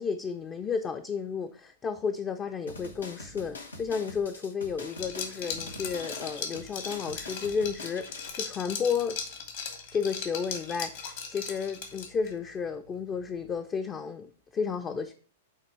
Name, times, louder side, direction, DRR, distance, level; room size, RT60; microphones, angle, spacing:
voice 1, 0.0-9.2 9.9-15.1, left 6 dB, 25° left, 0.4 m, -32 dB
sound 1, 2.7-8.3, left 2 dB, 85° left, 0.9 m, -44 dB
Liquid, 4.9-12.3, left 6 dB, 60° left, 1.5 m, -38 dB
7.6 x 2.9 x 4.4 m
hypercardioid pair, 105°, 0 cm